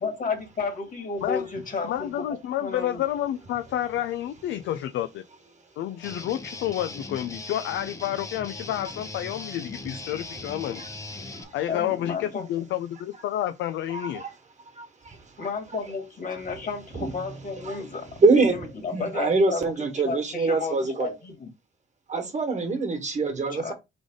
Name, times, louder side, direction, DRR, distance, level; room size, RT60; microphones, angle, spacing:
voice 1, 0.0-3.0 11.7-12.5 15.4-19.7 20.0-21.5 23.5-23.7, left 4 dB, 45° left, 1.7 m, -32 dB
voice 2, 1.8-5.2 5.8-10.9 11.5-14.2, left 12 dB, 75° left, 0.4 m, -30 dB
Guitar, 6.0-11.4, left 2 dB, 15° left, 0.7 m, -39 dB
voice 3, 13.9-14.3 14.8-15.5 16.9-17.1 17.5-17.8 18.2-21.1 22.1-23.7, right 3 dB, 35° right, 1.5 m, -25 dB
3.8 x 3.4 x 3.6 m
cardioid pair, 90°, 20 cm